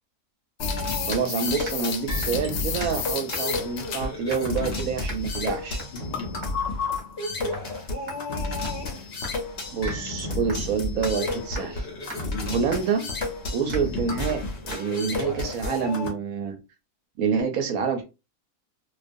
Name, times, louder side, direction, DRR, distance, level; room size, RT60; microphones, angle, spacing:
sound 1, 0.6-4.1 4.5-4.6 6.1-6.3 7.5-7.6 10.6-10.7 11.0-11.1 11.6-11.7 12.2-12.3 12.8-12.9, left 8 dB, 80° left, 1.1 m, -32 dB
sound 2, 0.6-16.1, left 2 dB, 55° left, 0.7 m, -31 dB
sound 3, 1.1-1.3 1.6-1.9 2.2-2.4 2.8-3.0 3.3-3.7 4.3-4.6 5.1-5.2 5.8-6.0 6.4-6.6 7.0-7.2 7.5-7.7 8.1-9.4 9.9-10.0 10.5-10.7 11.0-11.2 11.5-11.7 12.1-12.2 12.7-12.9 13.2-13.4 13.7-13.9 14.3-14.4 14.7-14.8, right 1 dB, 25° right, 0.7 m, -40 dB
voice 1, 1.1-5.8 9.7-11.9 12.5-13.1 13.5-16.6 17.2-18.0, right 6 dB, 70° right, 5 dB, 0.9 m, -27 dB
2.4 x 2.3 x 2.5 m, 0.27 s
omnidirectional pair, 1.6 m